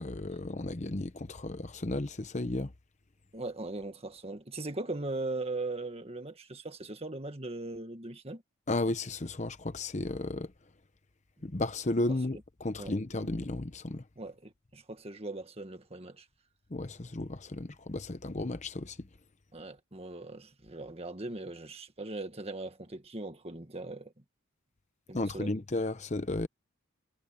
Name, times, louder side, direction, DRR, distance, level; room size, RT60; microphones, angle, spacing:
voice 1, 0.0-2.7 8.7-10.5 11.4-14.0 16.7-19.1 25.1-26.5, left 2 dB, 35° left, 0.8 m, -34 dB
voice 2, 3.3-8.4 12.1-12.2 12.8-12.9 13.2-13.3 14.2-16.3 19.5-24.1 25.1-25.6, right 2 dB, 30° right, 1.7 m, -39 dB
head